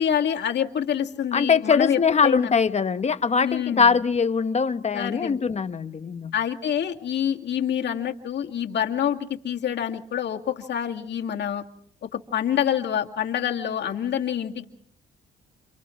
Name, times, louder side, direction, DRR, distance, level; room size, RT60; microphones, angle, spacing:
voice 1, 0.0-2.5 3.4-3.9 4.9-5.4 6.3-9.2 9.4-11.6 12.1-14.7, left 9 dB, 60° left, 2.3 m, -26 dB
voice 2, 1.3-6.3, left 5 dB, 35° left, 1.1 m, -22 dB
29.5 x 28.0 x 3.2 m
cardioid pair, 90°, 20 cm